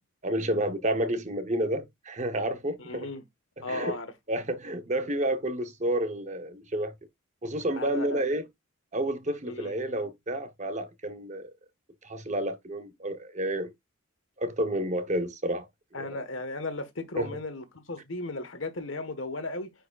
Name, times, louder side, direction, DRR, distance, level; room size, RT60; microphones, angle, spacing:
voice 1, 0.2-3.1 3.6-3.9 4.3-6.9 7.4-8.4 8.9-11.5 12.0-13.7 14.4-15.7 16.0-16.2 17.2-17.3, right 1 dB, 35° right, 0.9 m, -30 dB
voice 2, 2.8-3.2 3.6-4.1 7.8-8.2 9.5-9.8 15.9-19.7, left 2 dB, 65° left, 1.3 m, -35 dB
9.2 x 4.6 x 2.4 m
head